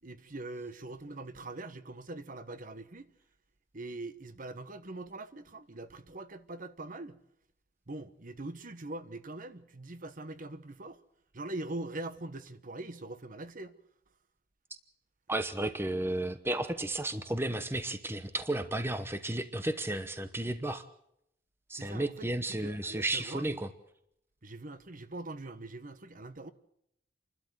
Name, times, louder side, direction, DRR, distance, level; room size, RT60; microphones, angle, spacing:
voice 1, 0.0-3.1 3.7-7.2 7.9-11.0 11.3-13.7 21.7-23.6 24.4-26.5, right 2 dB, 45° right, 1.1 m, -42 dB
voice 2, 15.3-20.8 21.7-23.7, right 1 dB, 15° right, 1.0 m, -33 dB
29.0 x 12.5 x 8.0 m
head